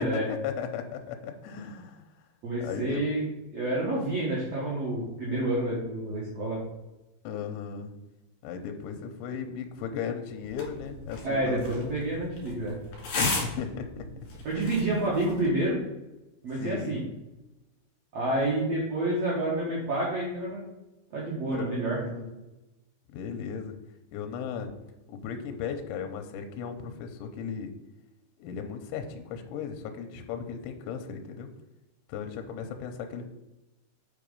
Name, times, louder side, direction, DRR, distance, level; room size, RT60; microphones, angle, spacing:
voice 1, 0.0-2.0 2.5-3.0 7.2-7.9 8.4-11.8 13.2-14.1 14.5-14.8 16.6-16.9 21.5-22.3 23.1-23.8 24.1-24.7 25.1-27.7 28.4-31.5 32.1-33.3, left 6 dB, 80° left, 5 dB, 3.0 m, -36 dB
voice 2, 2.4-3.2 3.5-6.6 11.2-12.7 14.4-15.8 16.4-17.0 18.1-20.6 21.1-22.0, right 1 dB, 75° right, -6 dB, 1.5 m, -29 dB
sound 1, 10.4-15.5, left 2 dB, 55° left, 3.5 m, -36 dB
8.8 x 4.1 x 5.4 m, 1.0 s
omnidirectional pair, 5.4 m